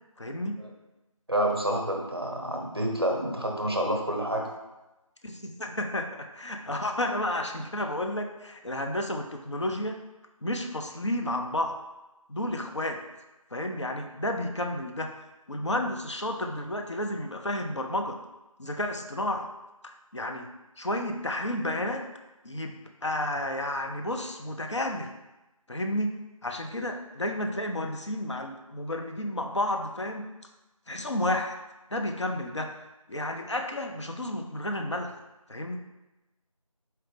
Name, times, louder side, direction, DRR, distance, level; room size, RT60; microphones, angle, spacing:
voice 1, 0.2-0.6 5.2-10.0 10.4-11.8 12.3-13.0 13.5-15.1 15.5-18.2 18.6-19.5 19.8-20.5 20.8-22.0 22.4-25.1 25.7-30.3 30.9-31.5 31.9-32.7 33.1-35.1 35.5-35.8, left 1 dB, 55° left, 4 dB, 0.4 m, -31 dB
voice 2, 1.3-4.5, right 1 dB, 45° right, 1 dB, 0.5 m, -28 dB
4.2 x 3.3 x 2.5 m, 1.0 s
figure-of-eight pair, 180°, 18 cm